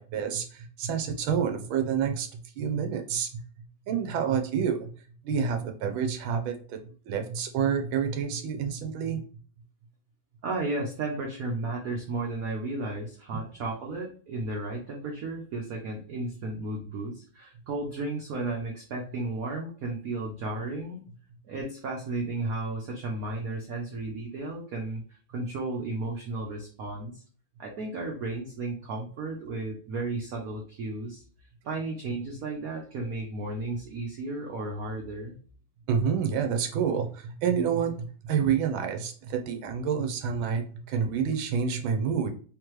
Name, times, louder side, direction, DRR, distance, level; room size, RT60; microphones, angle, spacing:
voice 1, 0.0-4.9 5.2-6.8 7.1-9.2 13.3-13.4 35.9-42.3, right 7 dB, 80° right, 6 dB, 1.4 m, -28 dB
voice 2, 10.4-21.0 21.4-25.0 25.3-27.2 27.6-31.2 31.6-35.4, right 2 dB, 65° right, 0 dB, 0.9 m, -34 dB
3.7 x 3.2 x 3.0 m, 0.42 s
omnidirectional pair, 2.3 m